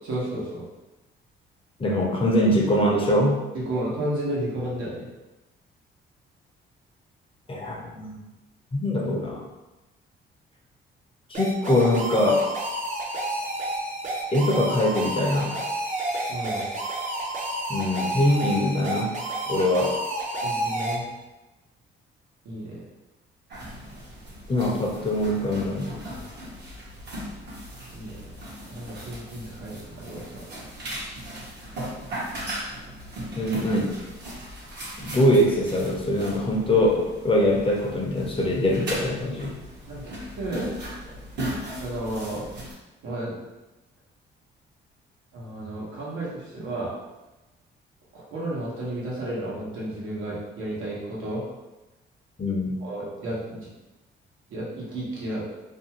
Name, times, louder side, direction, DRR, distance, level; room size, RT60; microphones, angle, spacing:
voice 1, 0.1-0.6 3.5-5.1 16.3-16.7 20.4-21.1 22.4-22.8 27.9-30.4 33.4-33.5 39.9-40.7 41.0-41.1 41.7-42.5 43.0-43.3 45.3-46.9 48.1-51.4 52.8-53.6 54.5-55.5, right 1 dB, 85° right, -6 dB, 1.0 m, -32 dB
voice 2, 1.8-3.4 7.5-8.2 8.7-9.5 11.3-12.5 14.3-15.6 17.7-19.1 19.5-19.9 24.5-26.3 33.4-34.0 35.0-39.5 52.4-52.8, left 1 dB, 25° left, -2 dB, 0.6 m, -23 dB
sound 1, 11.3-21.0, right 1 dB, 40° right, 0.6 m, -30 dB
sound 2, 23.5-42.7, right 1 dB, 60° right, 0.9 m, -38 dB
2.6 x 2.3 x 2.8 m, 1.1 s
cardioid pair, 90°, 20 cm